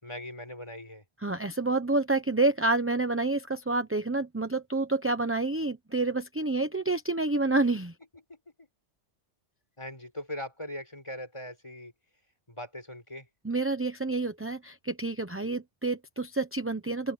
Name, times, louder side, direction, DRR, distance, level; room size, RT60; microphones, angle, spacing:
voice 1, 0.0-1.0 8.1-8.7 9.8-11.9 12.5-13.3, left 1 dB, 25° left, 5.1 m, -40 dB
voice 2, 1.2-7.9 13.4-17.1, right 2 dB, 15° right, 0.8 m, -28 dB
open air
omnidirectional pair, 1.2 m